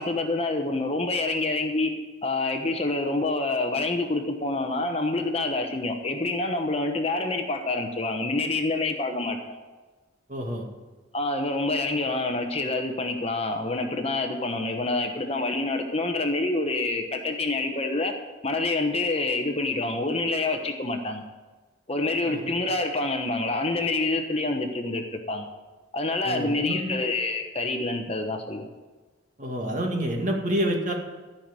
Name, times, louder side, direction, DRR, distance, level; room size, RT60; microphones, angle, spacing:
voice 1, 0.0-1.9 2.2-9.6 11.1-18.1 18.4-21.2 21.9-25.5 25.9-28.7, left 2 dB, 30° left, 5 dB, 1.0 m, -27 dB
voice 2, 10.3-10.7 22.2-22.5 26.2-27.0 29.4-30.9, equal, 40° right, 1 dB, 2.0 m, -28 dB
13.5 x 5.9 x 8.9 m, 1.3 s
head